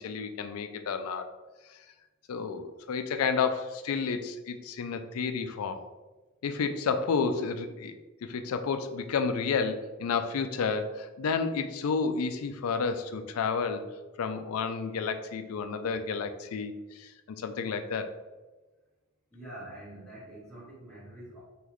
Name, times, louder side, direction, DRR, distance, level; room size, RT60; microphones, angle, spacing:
voice 1, 0.0-1.3 1.7-1.8 2.3-5.8 6.4-7.9 8.2-13.8 14.2-17.1 17.4-18.1, left 5 dB, 85° left, 8 dB, 0.4 m, -31 dB
voice 2, 19.3-21.4, right 1 dB, 5° left, -10 dB, 1.3 m, -45 dB
3.9 x 3.0 x 3.0 m, 1.2 s
head